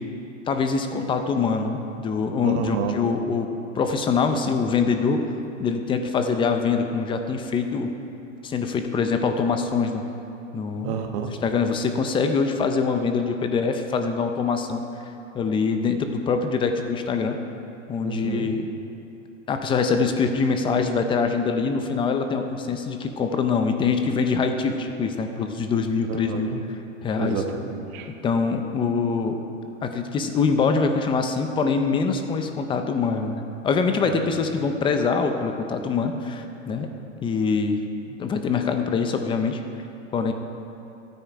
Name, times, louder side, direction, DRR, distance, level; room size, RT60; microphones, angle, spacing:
voice 1, 0.5-3.5 3.8-5.2 5.6-7.9 8.4-10.0 10.5-10.9 11.4-14.8 15.3-17.4 17.9-18.7 19.5-26.5 27.0-27.4 28.2-29.4 29.8-36.9 37.2-37.8 38.2-39.6 40.1-40.3, left 5 dB, 15° left, 6 dB, 0.5 m, -24 dB
voice 2, 2.4-3.0 10.8-11.4 18.0-18.6 26.1-26.6 27.2-28.1 34.0-34.3, right 6 dB, 40° right, 4 dB, 1.3 m, -30 dB
13.5 x 9.1 x 4.7 m, 3.0 s
hypercardioid pair, 135°, 39 cm